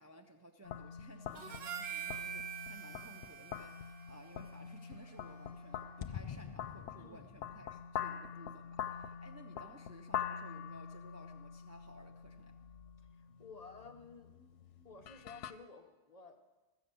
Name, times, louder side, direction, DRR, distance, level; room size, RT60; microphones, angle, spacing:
voice 1, 0.0-12.5, right 1 dB, 25° right, 3 dB, 0.4 m, -57 dB
sound 1, 0.6-15.5, left 8 dB, 90° left, 0.9 m, -45 dB
Harmonica, 1.4-5.8, right 9 dB, 65° right, 1.0 m, -46 dB
sound 2, 5.0-5.1 5.2-5.3 6.0-7.8, left 9 dB, 70° left, 0.3 m, -46 dB
voice 2, 13.2-14.3 14.8-16.5, left 4 dB, 40° left, 4 dB, 0.8 m, -53 dB
14.0 x 7.5 x 6.9 m, 1.2 s
omnidirectional pair, 1.2 m